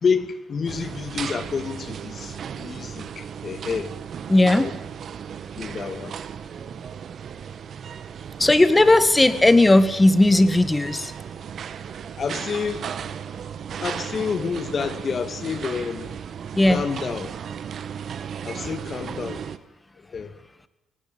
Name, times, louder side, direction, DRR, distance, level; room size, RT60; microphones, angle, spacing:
voice 1, 0.0-3.9 4.6-4.7 5.6-6.1 12.2-12.9 13.8-16.1 16.7-17.3 18.4-19.4 20.1-20.3, left 6 dB, 45° left, 2.2 m, -28 dB
sound 1, 0.7-19.6, right 8 dB, 55° right, 1.4 m, -35 dB
voice 2, 4.3-4.7 8.4-11.1 16.6-16.8, left 2 dB, 15° left, 1.9 m, -16 dB
23.0 x 18.5 x 9.1 m
supercardioid pair, 75°, 0 cm